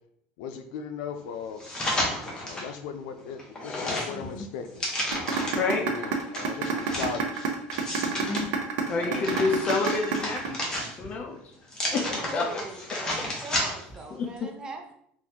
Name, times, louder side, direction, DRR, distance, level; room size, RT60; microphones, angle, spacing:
voice 1, 0.4-1.6 2.4-4.9 5.8-7.5 8.9-9.3, left 6 dB, 85° left, 7 dB, 0.5 m, -37 dB
sound 1, 1.6-2.7 3.2-5.7 6.3-8.4 8.9-11.2 11.7-14.0 14.4-14.5, left 1 dB, 20° left, 0.9 m, -32 dB
voice 2, 3.6-4.2 5.5-6.3 8.9-10.6 11.0-11.4 11.9-12.6 12.9-13.2 14.1-14.5, left 4 dB, 35° left, 2 dB, 0.5 m, -29 dB
sound 2, 5.1-11.1, right 7 dB, 75° right, 0.6 m, -29 dB
voice 3, 11.8-14.9, right 2 dB, 20° right, 3 dB, 0.6 m, -40 dB
3.8 x 2.5 x 2.8 m, 0.70 s
cardioid pair, 140°, 4 cm